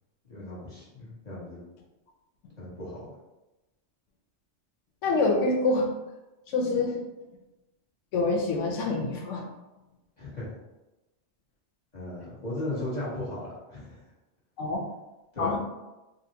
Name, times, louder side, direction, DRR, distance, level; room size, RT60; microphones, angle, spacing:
voice 1, 0.2-1.6 2.6-3.1 10.2-10.5 11.9-14.0 15.3-15.6, left 1 dB, 40° left, -9 dB, 1.2 m, -36 dB
voice 2, 5.0-5.9 6.5-7.0 8.1-9.4 14.6-14.8 15.4-15.6, left 3 dB, 90° left, 0 dB, 1.0 m, -26 dB
3.8 x 2.1 x 2.7 m, 1.0 s
omnidirectional pair, 1.2 m